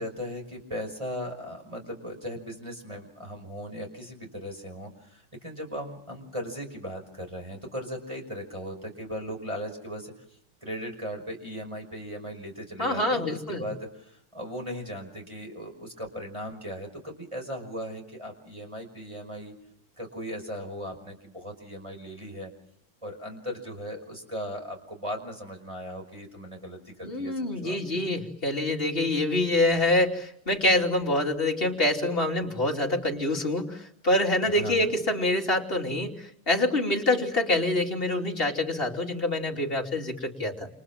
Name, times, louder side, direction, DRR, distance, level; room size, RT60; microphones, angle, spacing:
voice 1, 0.0-10.1 10.6-19.5 20.0-22.5 23.0-27.3 27.6-28.1 34.5-34.9, equal, 15° right, 2 dB, 5.7 m, -38 dB
voice 2, 12.8-13.6 27.0-40.7, left 1 dB, 25° left, 1 dB, 3.2 m, -26 dB
29.0 x 27.5 x 7.4 m, 0.71 s
omnidirectional pair, 2.3 m